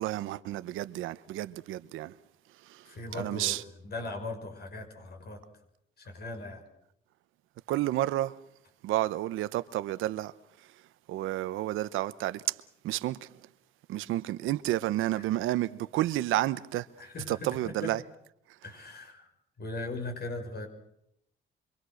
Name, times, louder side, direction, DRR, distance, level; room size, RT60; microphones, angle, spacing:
voice 1, 0.0-2.1 2.7-2.8 3.1-3.6 7.7-8.3 8.8-10.3 11.1-12.5 12.8-13.3 13.9-16.9 17.3-18.0, right 15 dB, 90° right, 0.9 m, -30 dB
voice 2, 2.9-5.4 6.0-6.6 15.1-15.2 17.0-17.9 18.6-19.3 19.6-20.7, left 2 dB, 55° left, 6.1 m, -39 dB
27.0 x 24.5 x 6.4 m
cardioid pair, 90°, 20 cm